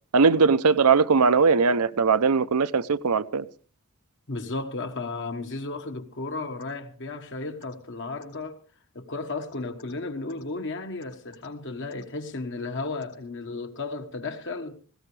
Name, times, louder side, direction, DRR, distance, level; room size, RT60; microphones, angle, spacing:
voice 1, 0.1-3.4, right 5 dB, 80° right, 0.7 m, -20 dB
voice 2, 4.3-8.6 8.9-14.8, left 3 dB, 55° left, 1.4 m, -34 dB
sound 1, 6.6-6.7 7.6-7.8 8.2-8.4 9.4-9.9 10.3-10.4 11.0-11.5 11.9-12.1 13.0-13.2, left 4 dB, 85° left, 4.6 m, -53 dB
19.0 x 17.5 x 3.3 m
head